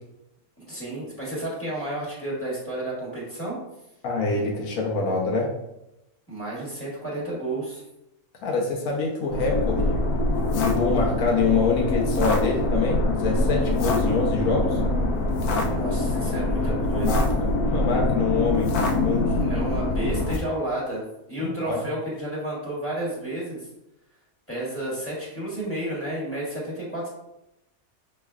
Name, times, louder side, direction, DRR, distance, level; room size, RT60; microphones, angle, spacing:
voice 1, 0.6-3.6 6.3-7.8 15.6-17.2 19.4-23.7 24.5-27.1, right 1 dB, 10° left, -6 dB, 1.4 m, -31 dB
voice 2, 4.0-5.5 8.4-10.0 10.5-14.8 16.9-19.3 21.4-21.8, left 4 dB, 70° left, -1 dB, 1.3 m, -25 dB
sound 1, 9.3-20.4, left 2 dB, 90° left, 1.1 m, -24 dB
5.8 x 3.2 x 2.3 m, 0.87 s
omnidirectional pair, 1.6 m